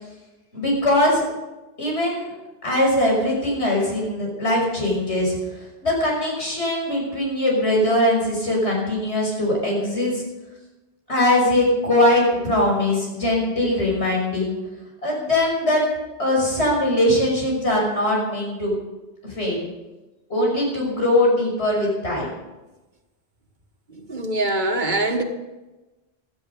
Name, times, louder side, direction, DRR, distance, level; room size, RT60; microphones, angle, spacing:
voice 1, 0.5-1.2 1.8-2.3 2.6-5.4 5.8-10.2 11.1-14.6 15.0-15.8 16.2-18.8 19.2-19.6 20.3-22.3, left 1 dB, 90° left, -2 dB, 6.2 m, -21 dB
voice 2, 23.9-25.2, right 2 dB, 45° right, 4 dB, 1.7 m, -23 dB
17.0 x 13.0 x 5.4 m, 1.1 s
omnidirectional pair, 1.1 m